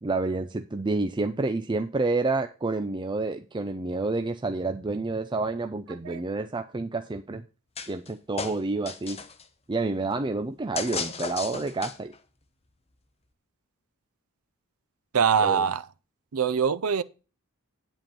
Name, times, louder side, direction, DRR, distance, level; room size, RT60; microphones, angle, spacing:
voice 1, 0.0-7.4 7.9-9.2 9.7-12.1 15.4-15.7, right 3 dB, 20° right, 0.5 m, -29 dB
sound 1, 7.8-8.1 8.4-9.4 10.8-12.2, left 5 dB, 30° left, 0.9 m, -34 dB
voice 2, 15.1-15.8 16.3-17.0, right 7 dB, 75° right, 0.6 m, -23 dB
9.2 x 7.9 x 4.3 m
head